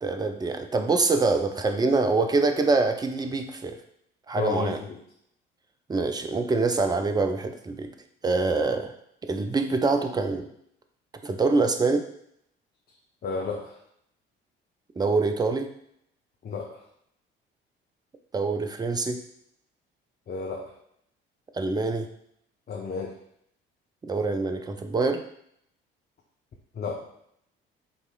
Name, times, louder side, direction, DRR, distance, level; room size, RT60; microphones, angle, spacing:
voice 1, 0.0-3.8 4.3-4.8 5.9-7.9 8.2-8.9 9.2-10.5 11.2-12.0 15.0-15.7 18.3-19.2 21.5-22.1 24.0-25.2, right 3 dB, 15° right, 7 dB, 0.5 m, -25 dB
voice 2, 4.4-5.0 13.2-13.8 16.4-16.8 20.3-20.7 22.7-23.1 26.7-27.0, left 4 dB, 30° left, -1 dB, 0.8 m, -31 dB
7.8 x 3.0 x 2.3 m, 0.72 s
figure-of-eight pair, 50°, 30 cm